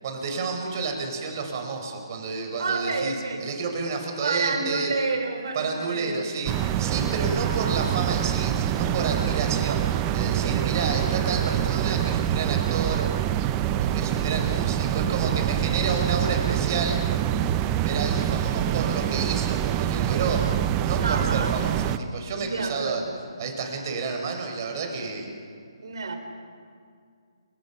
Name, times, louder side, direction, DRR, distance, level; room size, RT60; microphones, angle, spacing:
voice 1, 0.0-3.1 3.4-4.9 5.5-13.1 13.8-17.0 17.8-20.5 20.8-23.0 23.4-25.3, right 4 dB, 40° right, 3 dB, 4.6 m, -30 dB
voice 2, 2.6-3.5 4.2-6.3 10.4-10.8 21.0-21.6 22.3-23.1 25.8-26.2, right 4 dB, 65° right, 5 dB, 4.4 m, -29 dB
sound 1, 6.5-22.0, right 11 dB, 20° right, 0.8 m, -25 dB
29.5 x 18.0 x 5.8 m, 2.3 s
figure-of-eight pair, 150°, 3 cm